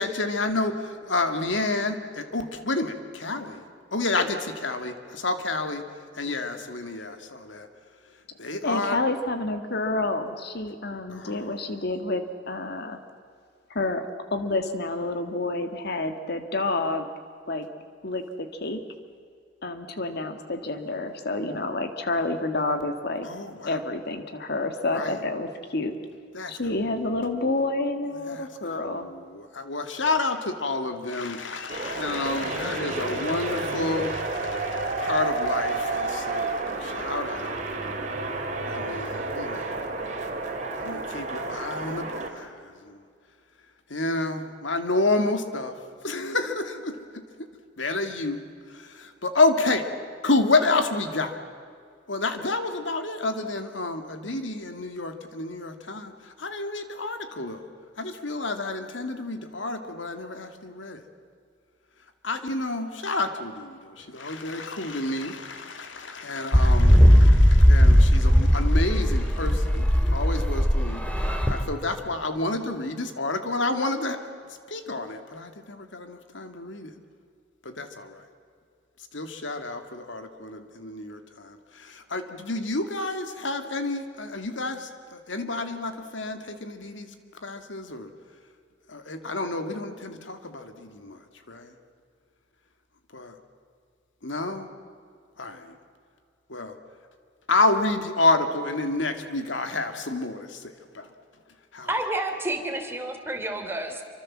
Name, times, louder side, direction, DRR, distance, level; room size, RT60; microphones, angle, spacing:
voice 1, 0.0-3.6 3.9-5.8 6.2-7.7 8.4-9.0 11.1-11.4 23.2-23.8 24.9-25.2 26.3-26.9 28.3-28.5 28.8-37.6 38.7-39.8 40.8-42.6 42.8-43.0 43.9-45.7 46.0-47.2 47.8-48.4 48.7-49.9 50.2-51.3 52.1-56.1 56.4-57.6 58.0-61.0 62.2-71.0 71.5-74.2 74.7-76.9 77.6-78.2 79.1-87.1 87.4-88.1 88.9-91.2 91.5-91.7 93.1-93.3 94.2-94.7 95.4-95.7 96.5-96.7 97.5-100.6 100.9-101.1 101.7-101.9, left 2 dB, 75° left, 7 dB, 2.3 m, -29 dB
voice 2, 8.6-13.0 13.7-17.1 17.5-17.7 18.0-18.8 19.6-23.3 23.6-25.9 26.5-29.1, left 2 dB, 60° left, 8 dB, 1.9 m, -29 dB
sound 1, 31.7-42.3, right 3 dB, 40° right, 3.3 m, -30 dB
sound 2, 66.5-71.6, equal, 5° left, 2.6 m, -18 dB
voice 3, 101.9-104.0, right 1 dB, 15° right, 4 dB, 3.2 m, -30 dB
27.5 x 25.0 x 7.5 m, 2.3 s
head